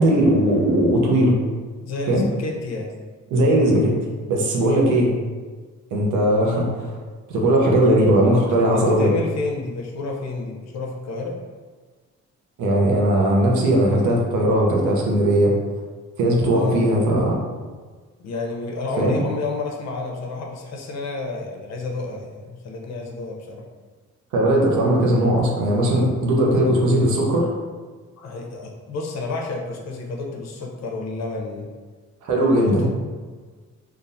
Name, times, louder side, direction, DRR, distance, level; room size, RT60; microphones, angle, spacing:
voice 1, 0.0-1.3 2.1-2.2 3.3-4.0 4.3-5.1 5.9-7.0 7.3-9.1 12.6-15.5 16.2-17.3 19.0-19.2 24.3-27.5 32.2-32.9, right 1 dB, 80° right, -1 dB, 0.8 m, -18 dB
voice 2, 1.8-2.9 8.3-11.4 16.5-17.1 18.2-23.6 28.2-31.7 32.3-32.9, left 3 dB, 60° left, 0 dB, 0.7 m, -30 dB
3.9 x 2.5 x 2.6 m, 1.4 s
cardioid pair, 90°, 30 cm